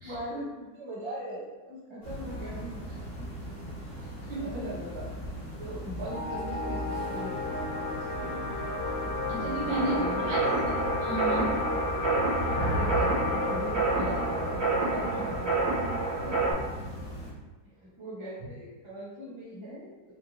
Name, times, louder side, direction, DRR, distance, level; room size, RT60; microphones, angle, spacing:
voice 1, 0.0-2.8 3.2-3.3 3.7-3.9 4.4-5.1 5.6-8.5 9.9-10.5 12.6-15.6 16.2-16.4 17.8-19.9, right 1 dB, 35° right, -7 dB, 0.4 m, -40 dB
sound 1, 2.0-17.3, equal, 35° left, 1.3 m, -37 dB
sound 2, 6.1-17.1, left 3 dB, 75° left, 1.5 m, -35 dB
voice 2, 9.3-10.4 10.7-11.5, right 1 dB, 75° right, -5 dB, 1.8 m, -33 dB
sound 3, 9.7-16.5, right 3 dB, 55° right, 1.3 m, -29 dB
4.3 x 2.6 x 2.9 m, 1.2 s
omnidirectional pair, 2.2 m